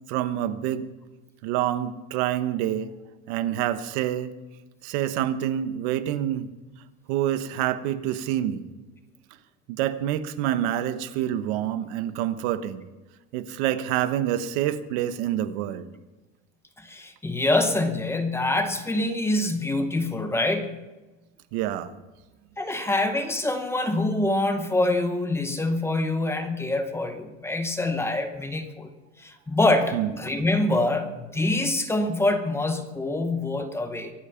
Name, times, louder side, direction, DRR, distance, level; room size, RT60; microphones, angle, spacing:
voice 1, 0.1-0.9 1.4-2.9 3.3-4.3 4.8-6.5 7.1-8.7 9.7-12.8 13.3-15.9 21.5-21.9 29.9-30.1, right 11 dB, 80° right, 11 dB, 1.2 m, -27 dB
voice 2, 16.8-20.8 22.6-28.9 29.2-34.1, left 2 dB, 10° left, 7 dB, 0.8 m, -25 dB
24.0 x 8.7 x 5.8 m, 1.1 s
cardioid pair, 180°, 33 cm